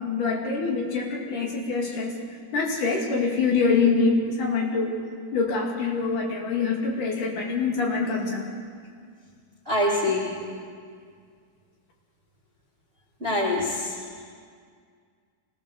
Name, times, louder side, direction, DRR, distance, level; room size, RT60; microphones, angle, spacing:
voice 1, 0.0-2.1 2.5-4.9 5.3-8.4, left 4 dB, 60° left, 0 dB, 4.1 m, -25 dB
voice 2, 9.7-10.3 13.2-13.9, left 1 dB, 20° right, -4 dB, 2.6 m, -24 dB
24.5 x 19.0 x 6.8 m, 2.1 s
omnidirectional pair, 4.3 m